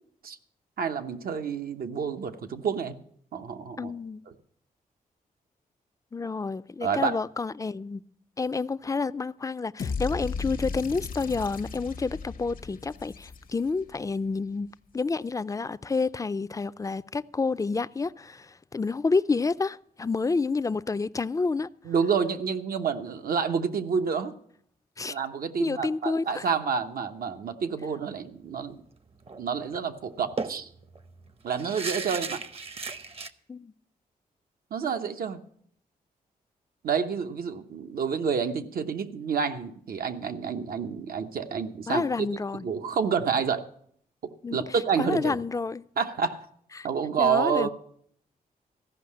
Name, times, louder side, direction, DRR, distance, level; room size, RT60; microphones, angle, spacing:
voice 1, 0.8-3.0 3.3-3.9 6.8-7.2 21.8-24.3 25.1-28.8 29.4-30.7 31.4-32.4 34.7-35.4 36.8-42.0 42.6-43.6 44.5-45.4 46.0-46.4 46.8-47.7, right 6 dB, 75° right, 0.9 m, -28 dB
voice 2, 3.8-4.2 6.1-8.0 8.4-14.7 14.9-21.7 25.0-25.2 25.6-26.5 33.5-33.7 41.9-42.7 44.4-44.6 45.0-45.8 46.8-46.9 47.2-47.7, left 4 dB, 20° left, 0.4 m, -29 dB
sound 1, 9.8-13.9, left 5 dB, 65° left, 0.8 m, -36 dB
sound 2, 29.2-29.4 29.7-29.8 30.4-33.3, right 4 dB, 40° right, 0.7 m, -35 dB
14.5 x 5.6 x 8.5 m
cardioid pair, 65°, 15 cm